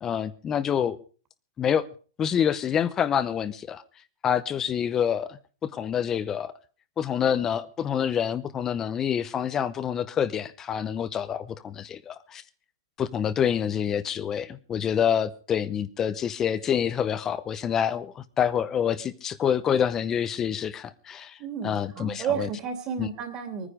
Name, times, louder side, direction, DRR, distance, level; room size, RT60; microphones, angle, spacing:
voice 1, 0.0-1.0 1.6-1.9 2.2-3.8 4.2-6.5 7.0-12.4 13.0-21.4 21.6-22.5 23.0-23.1, left 8 dB, 20° left, 0.7 m, -27 dB
voice 2, 21.4-23.7, right 7 dB, 25° right, 2.8 m, -32 dB
22.0 x 9.9 x 5.0 m
hypercardioid pair, 150°, 2 cm